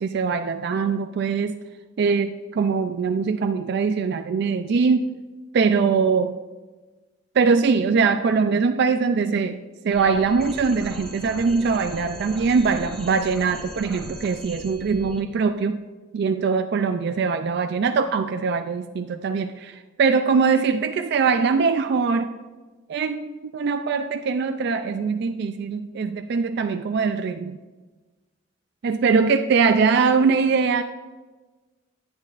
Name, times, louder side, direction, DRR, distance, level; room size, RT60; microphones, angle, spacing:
voice 1, 0.0-1.6 2.0-5.1 5.5-6.3 7.4-15.8 16.1-22.3 22.9-27.6 28.8-30.8, right 5 dB, 55° right, 7 dB, 0.3 m, -22 dB
sound 1, 9.9-15.2, equal, 5° left, 1.5 m, -39 dB
10.0 x 9.7 x 2.5 m, 1.2 s
head